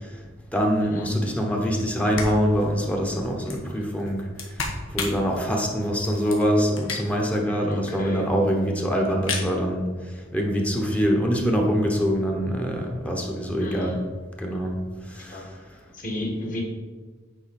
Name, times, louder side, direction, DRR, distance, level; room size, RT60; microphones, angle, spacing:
voice 1, 0.5-4.3 4.9-14.0 14.4-14.8 15.1-15.5, equal, 5° left, 0 dB, 1.0 m, -24 dB
sound 1, 1.8-7.3 7.7-7.8 8.0-8.7 9.1-9.5, left 4 dB, 85° left, 1.4 m, -34 dB
voice 2, 7.7-8.3 13.6-13.9 15.3-15.4 15.9-16.6, left 1 dB, 40° left, -1 dB, 2.0 m, -31 dB
9.1 x 5.1 x 4.3 m, 1.4 s
head